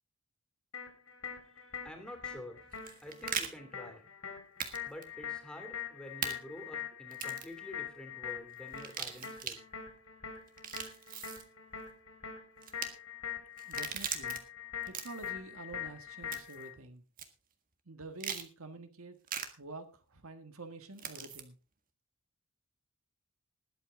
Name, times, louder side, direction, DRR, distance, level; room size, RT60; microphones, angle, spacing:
sound 1, 0.7-16.7, left 9 dB, 80° left, 4.3 m, -43 dB
voice 1, 1.8-2.7 3.0-4.1 4.8-9.6, left 1 dB, 5° left, 5 dB, 3.0 m, -48 dB
sound 2, 2.7-3.5 4.6-4.8 5.0-5.1 6.2-6.3 7.1-7.5 8.7-9.6 10.5-11.4 12.6-12.9 13.6-14.4 14.8-15.3 16.3-16.6 17.2-17.3 18.2-18.5 19.3-19.5 21.0-21.4, right 7 dB, 40° right, 1.6 m, -39 dB
voice 2, 13.7-14.4 14.9-17.0 17.9-19.2 19.6-21.6, right 3 dB, 75° right, 8 dB, 1.7 m, -48 dB
20.0 x 8.4 x 3.7 m, 0.31 s
head